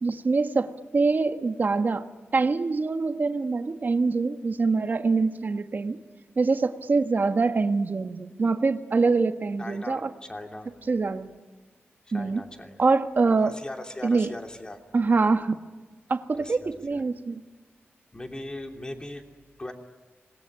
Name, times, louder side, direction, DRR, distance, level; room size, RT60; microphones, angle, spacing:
voice 1, 0.0-2.1 2.3-6.0 6.4-10.1 10.9-11.3 12.1-12.4 12.8-13.6 14.0-14.3 14.9-15.6 16.1-17.4, right 4 dB, 45° right, 8 dB, 1.5 m, -24 dB
voice 2, 9.6-10.7 12.1-12.8 13.3-14.8 16.3-17.0 18.1-19.2 19.6-19.7, left 1 dB, 20° left, 4 dB, 2.9 m, -39 dB
26.5 x 21.0 x 9.7 m, 1.3 s
wide cardioid pair, 140°, 4 cm